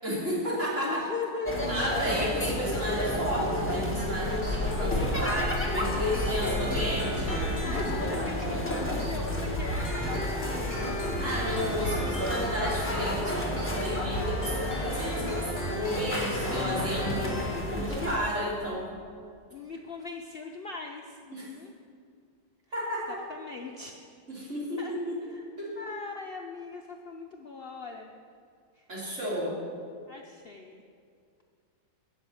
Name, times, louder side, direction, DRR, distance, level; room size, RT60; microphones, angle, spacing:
voice 1, 0.0-1.0 1.7-7.3 11.2-17.4 17.7-18.9 21.3-21.5 22.7-23.2 24.3-25.2 25.6-25.7 28.9-29.6, equal, 40° right, -6 dB, 3.5 m, -32 dB
voice 2, 0.8-1.7 5.9-6.3 6.6-6.8 7.2-7.3 7.6-10.8 17.5-18.3 19.5-21.7 23.3-24.1 24.8-24.9 25.2-25.5 25.8-28.1 28.8-28.9 30.1-30.8, left 4 dB, 75° left, 1 dB, 0.5 m, -40 dB
sound 1, 1.5-18.2, left 1 dB, 10° left, 1.3 m, -31 dB
sound 2, 4.2-17.8, left 1 dB, 40° left, 3.7 m, -36 dB
11.5 x 6.4 x 8.5 m, 2.3 s
omnidirectional pair, 2.0 m